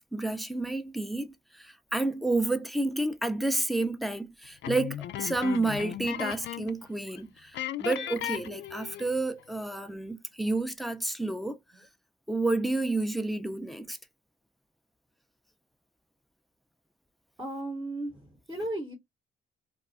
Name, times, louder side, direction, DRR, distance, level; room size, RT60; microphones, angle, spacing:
voice 1, 0.1-11.6 12.3-14.0, right 2 dB, ahead, 0.5 m, -30 dB
sound 1, 4.6-6.8 7.1-7.2 7.5-9.2, left 11 dB, 65° left, 0.4 m, -36 dB
voice 2, 17.4-18.9, right 1 dB, 15° right, 0.8 m, -35 dB
2.4 x 2.3 x 3.9 m
cardioid pair, 90°, 20 cm